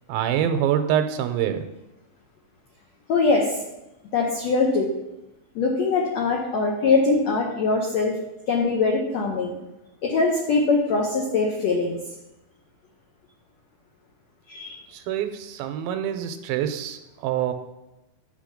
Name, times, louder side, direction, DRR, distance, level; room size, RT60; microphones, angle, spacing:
voice 1, 0.1-1.6 15.1-17.5, right 10 dB, 85° right, 8 dB, 2.4 m, -25 dB
voice 2, 3.1-3.6 4.1-4.9 5.5-8.2 8.5-9.5 10.0-12.0 14.5-14.8, left 3 dB, 85° left, 0 dB, 1.5 m, -22 dB
9.7 x 3.4 x 6.5 m, 0.95 s
omnidirectional pair, 4.3 m